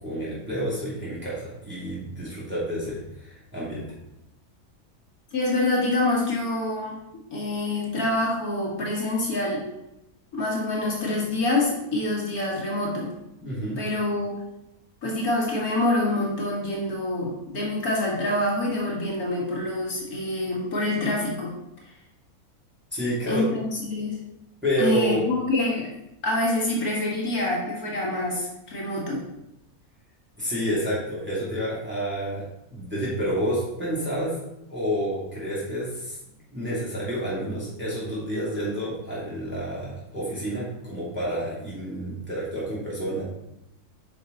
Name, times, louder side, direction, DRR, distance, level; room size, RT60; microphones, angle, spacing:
voice 1, 0.0-3.8 13.4-14.0 22.9-23.4 24.6-25.2 30.4-34.3 34.7-36.2 36.5-43.2, equal, 5° right, -8 dB, 2.7 m, -29 dB
voice 2, 5.3-7.0 7.3-9.6 10.3-13.1 13.8-14.4 15.0-21.5 23.3-23.6 23.9-24.2 24.8-25.9 26.2-29.2, left 2 dB, 70° left, -3 dB, 2.2 m, -26 dB
8.5 x 5.6 x 4.0 m, 0.86 s
omnidirectional pair, 1.6 m